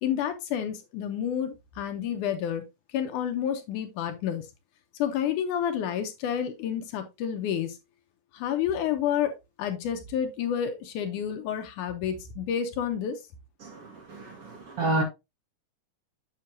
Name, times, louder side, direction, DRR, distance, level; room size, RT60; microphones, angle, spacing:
voice 1, 0.0-2.6 2.9-4.5 5.0-7.8 8.3-13.2, left 9 dB, 75° left, 2.2 m, -29 dB
voice 2, 13.6-15.0, right 2 dB, 55° right, 1.9 m, -30 dB
7.5 x 6.2 x 2.7 m
omnidirectional pair, 3.8 m